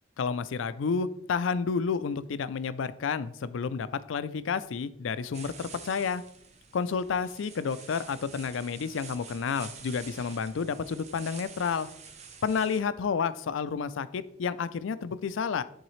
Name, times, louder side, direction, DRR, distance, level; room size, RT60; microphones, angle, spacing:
voice 1, 0.2-6.2 6.7-11.9 12.4-15.6, left 5 dB, 80° left, 14 dB, 0.4 m, -30 dB
sound 1, 5.3-12.8, right 5 dB, 35° right, 0.7 m, -48 dB
10.5 x 4.0 x 3.2 m, 0.70 s
head